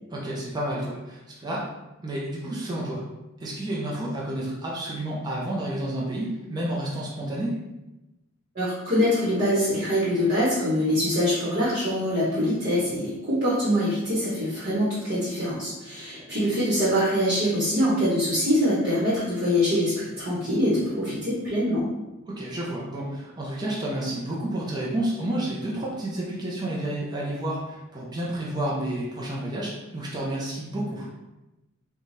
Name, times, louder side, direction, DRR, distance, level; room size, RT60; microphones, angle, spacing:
voice 1, 0.1-1.7 2.0-3.0 3.4-7.6 22.4-31.1, right 1 dB, 20° right, -5 dB, 0.6 m, -30 dB
voice 2, 8.5-21.8, equal, 45° right, -10 dB, 1.1 m, -24 dB
4.0 x 2.3 x 3.2 m, 1.0 s
head